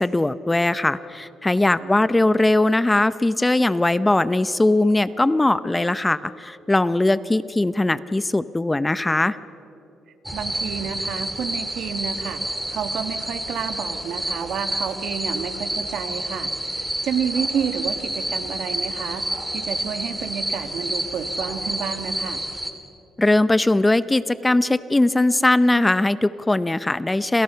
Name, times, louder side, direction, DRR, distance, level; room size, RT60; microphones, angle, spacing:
voice 1, 0.0-9.4 23.2-27.4, left 2 dB, 15° left, 15 dB, 0.7 m, -20 dB
voice 2, 1.8-2.1 10.3-22.5, right 7 dB, 70° right, 8 dB, 2.0 m, -30 dB
sound 1, 10.3-22.7, right 1 dB, 5° right, 2.8 m, -29 dB
28.5 x 28.5 x 5.8 m, 2.8 s
cardioid pair, 90°, 0 cm